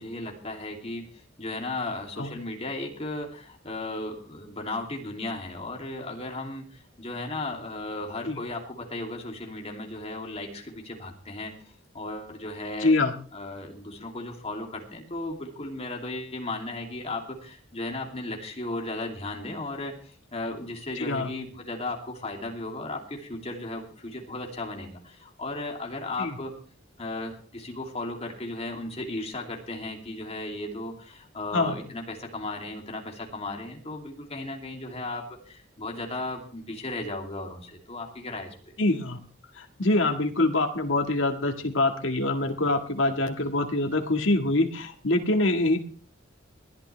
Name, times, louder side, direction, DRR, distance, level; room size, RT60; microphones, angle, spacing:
voice 1, 0.0-11.5 11.9-12.9 13.3-26.5 27.0-38.7, left 2 dB, 35° left, 1 dB, 2.8 m, -35 dB
voice 2, 12.8-13.1 21.0-21.3 26.2-26.3 31.5-31.8 38.8-39.2 39.6-45.8, left 2 dB, 80° left, 4 dB, 1.8 m, -25 dB
20.5 x 12.0 x 3.4 m, 0.42 s
head